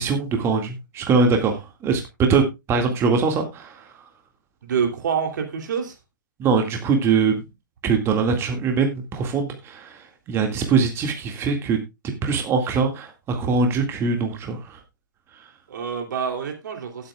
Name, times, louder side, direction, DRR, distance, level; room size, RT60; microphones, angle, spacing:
voice 1, 0.0-2.0 2.3-4.1 6.4-7.4 7.8-11.8 12.2-14.8 15.3-15.5, right 5 dB, 25° right, 4 dB, 2.0 m, -22 dB
voice 2, 4.6-5.9 15.7-17.1, right 7 dB, 65° right, 4 dB, 2.9 m, -26 dB
17.5 x 8.5 x 2.3 m, 0.23 s
hypercardioid pair, 125°, 11 cm